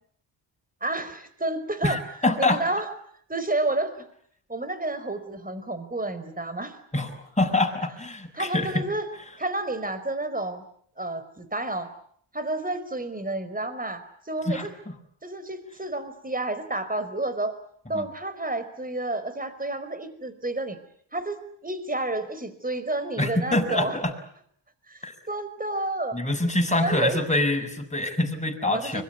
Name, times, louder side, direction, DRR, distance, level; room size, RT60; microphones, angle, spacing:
voice 1, 0.8-2.0 2.4-2.9 3.3-4.0 4.5-6.8 8.3-9.1 9.4-10.6 11.0-11.9 12.3-14.7 15.2-17.6 17.9-20.8 21.1-24.0 24.9-25.0 25.3-26.2 26.8-27.2 28.6-29.0, right 2 dB, 15° right, 11 dB, 4.9 m, -30 dB
voice 2, 1.8-2.6 6.9-8.8 14.4-14.9 17.9-18.1 23.2-24.1 25.0-25.1 26.1-29.0, left 2 dB, 15° left, 4 dB, 6.2 m, -25 dB
25.0 x 22.5 x 9.6 m, 0.65 s
cardioid pair, 80°, 47 cm